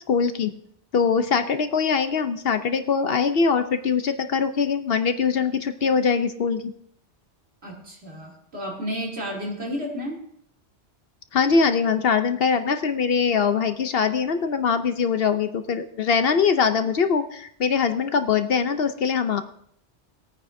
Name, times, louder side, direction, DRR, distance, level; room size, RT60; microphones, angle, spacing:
voice 1, 0.1-0.5 0.9-6.7 11.3-19.4, left 6 dB, 60° left, 9 dB, 0.9 m, -22 dB
voice 2, 7.6-10.2, equal, 65° right, -3 dB, 3.1 m, -32 dB
20.0 x 9.2 x 2.7 m, 0.68 s
omnidirectional pair, 1.1 m